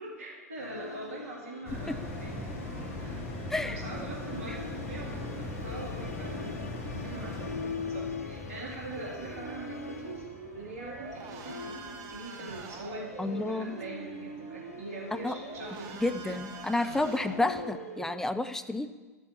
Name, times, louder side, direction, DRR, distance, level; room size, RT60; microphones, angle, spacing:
voice 1, 0.0-3.1 3.5-6.6 6.9-10.3 10.5-16.3 16.6-16.7, right 2 dB, 65° right, -5 dB, 3.1 m, -43 dB
Musical instrument, 0.6-18.2, left 5 dB, 85° left, 0.6 m, -44 dB
sound 1, 1.6-12.3 12.8-12.9, left 1 dB, 60° left, 2.7 m, -40 dB
voice 2, 3.5-3.8 4.5-4.6 13.2-13.8 15.1-15.4 16.0-18.9, left 2 dB, 5° left, 10 dB, 0.5 m, -30 dB
sound 2, 9.0-18.1, right 6 dB, 45° right, 0.9 m, -44 dB
13.5 x 6.5 x 3.0 m, 1.3 s
figure-of-eight pair, 85°, 8 cm